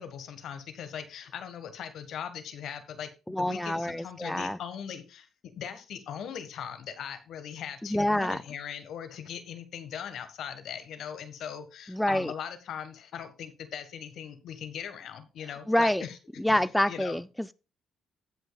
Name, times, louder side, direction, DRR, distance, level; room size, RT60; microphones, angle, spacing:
voice 1, 0.0-3.1 3.4-5.3 5.6-16.2 16.5-17.2, left 8 dB, 75° left, 1.4 m, -40 dB
voice 2, 3.3-4.6 7.9-8.4 11.9-12.3 15.7-16.0 16.4-17.5, left 1 dB, 5° left, 0.3 m, -27 dB
16.0 x 5.4 x 2.3 m
cardioid pair, 90°, 0 cm